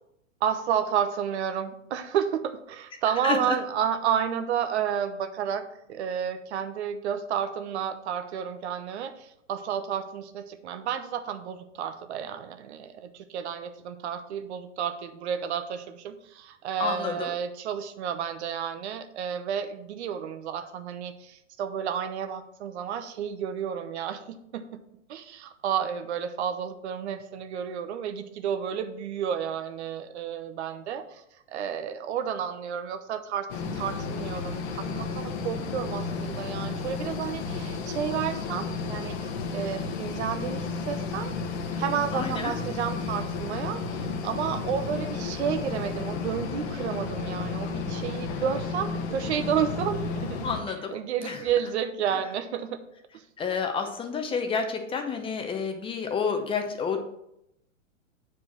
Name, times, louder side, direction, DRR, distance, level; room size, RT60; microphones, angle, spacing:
voice 1, 0.4-5.6 5.9-24.8 25.1-31.2 31.5-41.3 41.8-50.5 50.9-52.8 53.1-53.2, right 8 dB, 55° right, 10 dB, 0.9 m, -31 dB
voice 2, 3.2-3.6 16.8-17.3 42.1-42.5 50.4-51.0 51.2-51.4 53.4-57.0, left 5 dB, 15° left, 5 dB, 0.8 m, -29 dB
sound 1, 33.5-50.6, left 4 dB, 50° left, 1.2 m, -33 dB
7.9 x 4.8 x 4.4 m, 0.78 s
hypercardioid pair, 125°, 39 cm